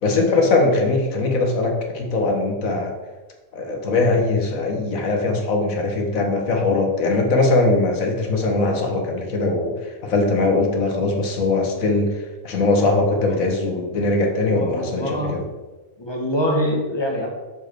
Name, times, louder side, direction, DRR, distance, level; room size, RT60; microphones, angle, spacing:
voice 1, 0.0-2.9 3.5-15.4, left 3 dB, 90° left, 2 dB, 1.6 m, -21 dB
voice 2, 14.5-15.3 16.0-17.3, equal, 20° left, -1 dB, 1.4 m, -25 dB
6.6 x 5.0 x 4.5 m, 1.2 s
omnidirectional pair, 1.4 m